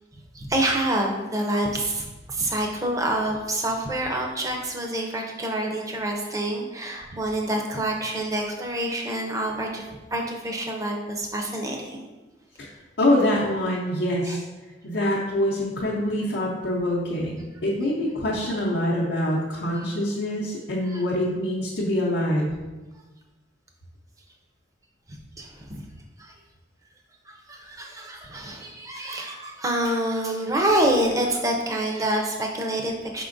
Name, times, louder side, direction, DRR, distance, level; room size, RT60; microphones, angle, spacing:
voice 1, 0.3-9.8 10.1-12.0 14.2-14.4 19.7-19.8 20.9-21.0 25.1-25.8 26.2-26.3 27.3-33.2, right 1 dB, 20° right, 1 dB, 0.5 m, -27 dB
voice 2, 13.0-14.4 14.8-22.5, left 1 dB, 80° left, -5 dB, 0.7 m, -25 dB
5.0 x 3.7 x 2.5 m, 1.2 s
head